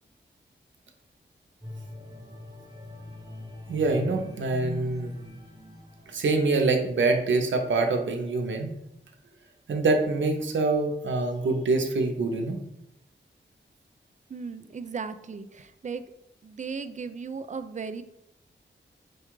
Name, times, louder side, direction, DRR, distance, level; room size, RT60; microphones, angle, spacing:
sound 1, 1.6-6.9 7.4-7.6, left 1 dB, 20° right, 0.9 m, -43 dB
voice 1, 3.7-5.1 6.1-8.7 9.7-12.6, right 3 dB, 85° right, 4 dB, 0.7 m, -25 dB
voice 2, 14.3-16.0 16.4-18.0, right 5 dB, 40° right, 10 dB, 0.4 m, -36 dB
4.5 x 2.3 x 4.6 m, 0.80 s
wide cardioid pair, 70°, 19 cm